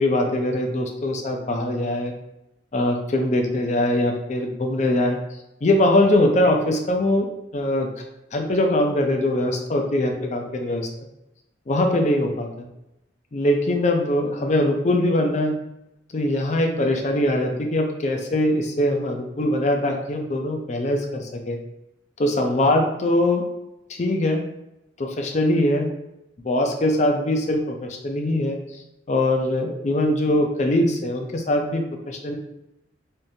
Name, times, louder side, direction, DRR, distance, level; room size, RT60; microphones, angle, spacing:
voice 1, 0.0-2.1 2.7-5.2 5.6-7.3 7.5-7.9 8.3-10.9 11.7-12.5 13.3-15.5 16.1-21.6 22.2-23.4 23.9-24.4 25.0-25.9 26.4-28.6 29.1-32.4, left 1 dB, 35° left, 3 dB, 0.4 m, -22 dB
3.5 x 2.5 x 2.7 m, 0.89 s
head